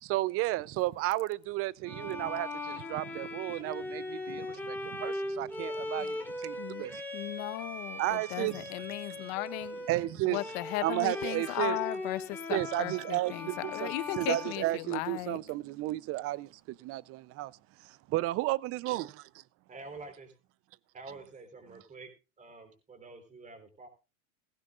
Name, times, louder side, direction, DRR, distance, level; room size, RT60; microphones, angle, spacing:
voice 1, 0.0-7.0 8.0-8.7 9.9-10.4 10.8-11.8 12.5-17.5 17.8-19.3, right 17 dB, 40° right, 0.6 m, -33 dB
Bowed string instrument, 1.8-15.3, left 1 dB, 5° left, 3.4 m, -40 dB
voice 2, 6.6-9.9 10.2-15.4, left 19 dB, 55° left, 1.1 m, -36 dB
voice 3, 19.7-20.3 20.9-22.1 22.4-23.9, right 3 dB, 20° right, 3.7 m, -47 dB
17.5 x 15.5 x 2.5 m
supercardioid pair, 125°, 38 cm